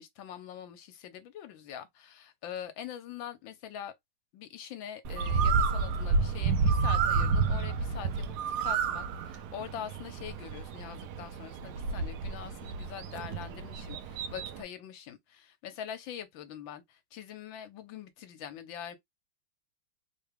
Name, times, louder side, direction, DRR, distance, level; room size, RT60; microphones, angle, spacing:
voice 1, 0.0-3.9 4.3-19.0, left 9 dB, 75° left, 1.4 m, -43 dB
Bird, 5.0-14.6, right 4 dB, 75° right, 0.9 m, -30 dB
3.6 x 2.2 x 3.3 m
omnidirectional pair, 2.2 m